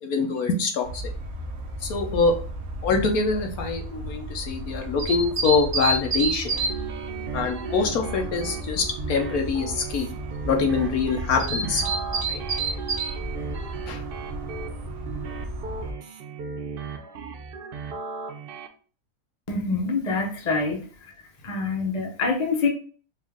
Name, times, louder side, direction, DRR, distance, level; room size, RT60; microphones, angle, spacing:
voice 1, 0.0-1.0 1.8-2.4 2.8-6.5 7.3-10.1 10.4-11.9 12.3-12.4 13.9-14.0, left 4 dB, 70° left, 4 dB, 1.1 m, -24 dB
sound 1, 0.8-15.9, right 2 dB, 55° right, 1.0 m, -32 dB
sound 2, 6.5-18.7, right 6 dB, 85° right, 0.4 m, -36 dB
voice 2, 19.5-21.1 21.4-22.7, left 4 dB, 35° left, 1 dB, 0.8 m, -26 dB
4.5 x 2.5 x 3.4 m, 0.39 s
omnidirectional pair, 1.6 m